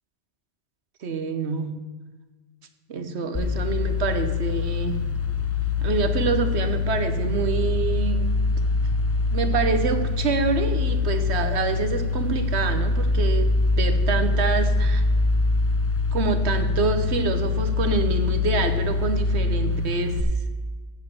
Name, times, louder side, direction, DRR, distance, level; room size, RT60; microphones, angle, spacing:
voice 1, 1.0-1.8 2.9-5.1 5.8-8.3 9.3-15.0 16.1-20.3, right 5 dB, 80° right, 8 dB, 1.2 m, -27 dB
sound 1, 3.3-20.2, left 3 dB, 25° left, 0.3 m, -24 dB
8.1 x 7.3 x 7.0 m, 1.3 s
omnidirectional pair, 1.1 m